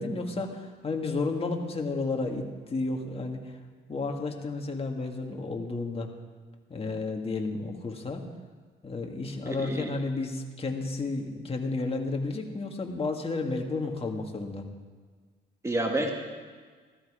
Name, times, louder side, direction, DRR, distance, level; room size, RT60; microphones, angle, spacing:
voice 1, 0.0-3.6 3.9-6.1 6.7-8.3 8.8-14.7, left 3 dB, 30° left, 2 dB, 2.0 m, -32 dB
voice 2, 9.5-9.9 15.6-16.1, right 1 dB, 15° right, 2 dB, 1.9 m, -29 dB
14.5 x 13.5 x 5.0 m, 1.5 s
cardioid pair, 90°, 20 cm